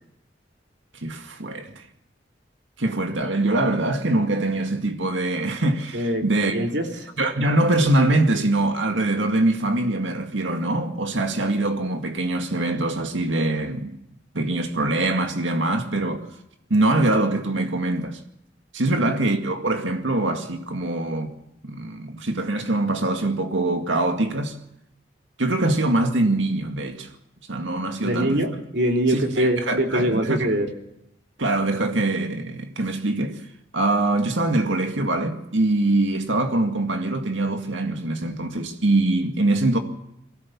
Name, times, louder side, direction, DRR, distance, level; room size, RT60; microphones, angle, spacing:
voice 1, 1.0-1.8 2.8-6.6 7.2-14.0 14.3-16.3 16.7-18.2 18.7-21.3 21.6-24.6 25.4-27.1 27.5-28.4 29.1-30.4 31.4-33.4 33.7-39.8, right 2 dB, 85° right, 2.1 m, -23 dB
voice 2, 5.9-7.1 19.0-19.1 28.0-30.7, right 1 dB, 70° right, 3.1 m, -23 dB
22.5 x 17.0 x 7.2 m
head